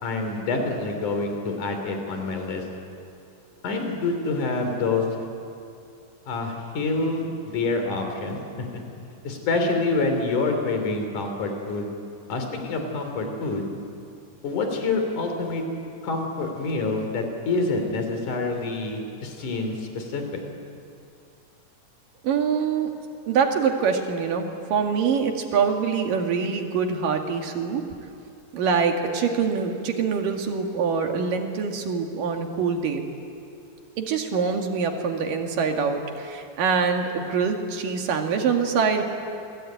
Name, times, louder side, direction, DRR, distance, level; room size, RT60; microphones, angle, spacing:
voice 1, 0.0-2.6 3.6-5.0 6.3-8.8 9.2-11.9 12.3-13.7 14.4-15.6 16.0-20.4, left 3 dB, 65° left, 4 dB, 4.6 m, -27 dB
voice 2, 22.2-22.9 23.3-27.8 28.5-33.0 34.0-39.0, right 6 dB, 80° right, 3 dB, 3.7 m, -24 dB
29.0 x 21.5 x 9.3 m, 2.6 s
omnidirectional pair, 3.8 m